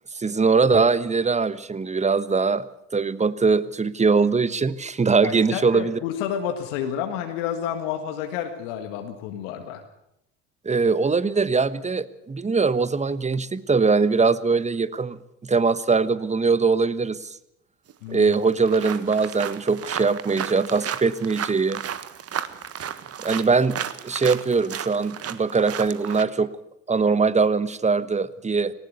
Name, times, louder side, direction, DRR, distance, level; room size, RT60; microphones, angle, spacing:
voice 1, 0.1-2.7 2.9-6.0 10.6-17.4 18.1-21.8 23.2-26.5 26.9-28.7, right 4 dB, 20° right, 16 dB, 1.2 m, -22 dB
voice 2, 5.2-9.8 18.0-18.4, left 9 dB, 70° left, 6 dB, 1.8 m, -30 dB
sound 1, 17.9-18.0 18.3-26.2, right 9 dB, 40° right, 1.5 m, -33 dB
18.5 x 18.5 x 8.2 m, 0.83 s
figure-of-eight pair, 55°, 37 cm